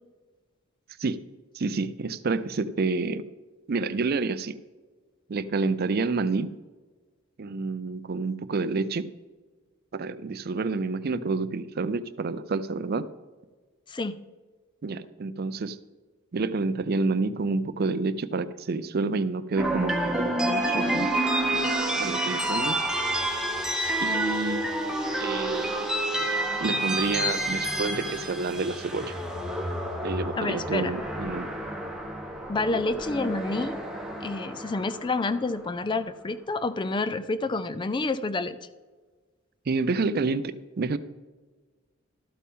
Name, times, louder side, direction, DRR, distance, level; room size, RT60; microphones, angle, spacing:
voice 1, 1.5-3.2 3.7-4.6 5.3-6.5 7.4-9.1 9.9-13.1 14.8-15.8 16.3-21.1 22.0-22.8 24.0-24.9 25.2-25.9 26.6-29.2 30.0-31.5 39.7-41.0, right 3 dB, 50° right, 14 dB, 0.5 m, -29 dB
sound 1, 19.6-35.8, right 1 dB, 5° right, 1.1 m, -29 dB
voice 2, 30.4-30.9 32.5-33.8 34.2-38.6, left 3 dB, 25° left, 13 dB, 0.4 m, -28 dB
13.0 x 8.4 x 3.7 m, 1.3 s
head